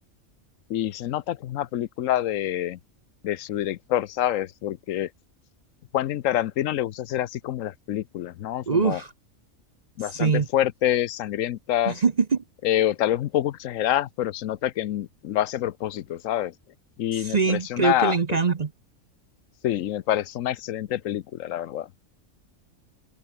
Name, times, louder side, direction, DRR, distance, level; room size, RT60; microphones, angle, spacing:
voice 1, 0.7-2.8 3.2-5.1 5.9-9.0 10.0-12.0 12.6-16.5 17.0-18.4 19.6-21.9, left 12 dB, 75° left, 1.0 m, -27 dB
voice 2, 8.7-9.1 10.1-10.5 11.9-12.4 17.1-18.7, right 5 dB, 35° right, 0.8 m, -23 dB
omnidirectional pair, 1.4 m